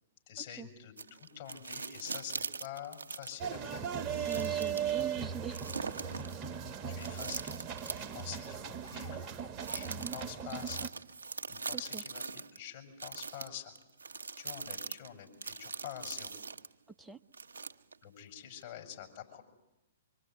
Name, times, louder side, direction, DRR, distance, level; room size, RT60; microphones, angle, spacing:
voice 1, 0.3-3.8 5.9-6.1 6.9-7.5 7.9-9.3 9.7-10.9 11.5-13.7 14.4-16.3 18.0-19.4, left 10 dB, 45° left, 3 dB, 7.2 m, -46 dB
sound 1, 1.0-3.5 4.0-5.0 5.5-6.3 7.0-8.2 8.9-9.0 9.6-12.6 13.0-16.7 17.3-18.0 18.6-18.7, right 4 dB, 75° right, 1.0 m, -42 dB
sound 2, 3.4-10.9, right 8 dB, 25° right, 1.1 m, -38 dB
voice 2, 4.3-5.6 9.9-10.2 11.7-12.0 17.0-17.2, right 6 dB, 5° right, 9 dB, 0.9 m, -43 dB
25.5 x 24.0 x 9.8 m, 0.94 s
figure-of-eight pair, 115°, 0 cm